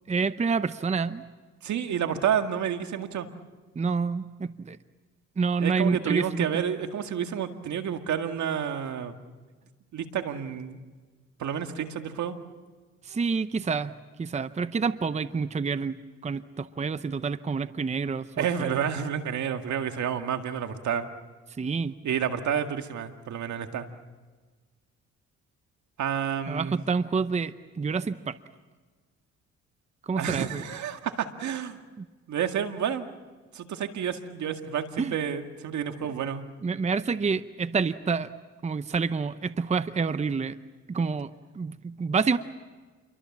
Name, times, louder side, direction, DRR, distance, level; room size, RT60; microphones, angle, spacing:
voice 1, 0.1-1.2 3.8-4.8 5.4-6.6 13.0-18.8 21.6-21.9 26.5-28.4 30.1-30.6 32.0-32.1 35.0-35.1 36.6-38.3 38.6-40.6 40.9-41.3 41.5-42.4, right 5 dB, 25° right, 13 dB, 0.7 m, -28 dB
voice 2, 1.6-3.3 5.6-9.2 9.9-10.8 11.4-12.4 18.4-21.1 22.0-23.9 26.0-26.8 30.2-31.8 32.3-33.1 33.5-36.4, right 8 dB, 70° right, 6 dB, 2.0 m, -30 dB
29.0 x 23.5 x 7.3 m, 1.4 s
cardioid pair, 90°, 30 cm